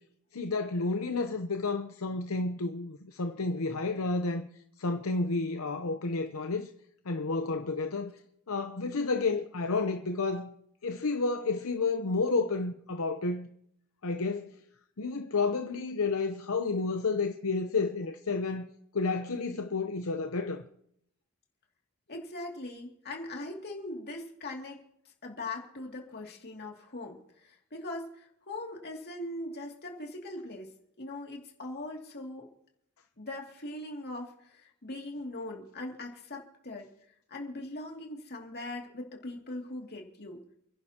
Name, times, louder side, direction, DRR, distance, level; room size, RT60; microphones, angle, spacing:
voice 1, 0.3-4.4 4.8-6.7 7.0-8.1 8.5-10.5 10.8-13.5 14.0-14.5 15.0-18.7 18.9-20.6, left 3 dB, 70° left, 0.8 m, -31 dB
voice 2, 22.1-24.9 25.2-30.7 31.0-32.5 33.2-36.9 37.3-40.4, left 2 dB, 50° left, 2.5 m, -40 dB
29.0 x 11.0 x 2.9 m
head